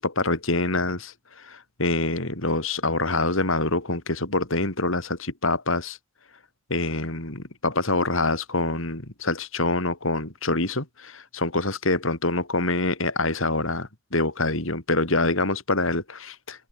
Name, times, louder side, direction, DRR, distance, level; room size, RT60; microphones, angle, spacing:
voice 1, 0.0-6.0 6.7-16.7, left 2 dB, 70° left, 4.1 m, -26 dB
head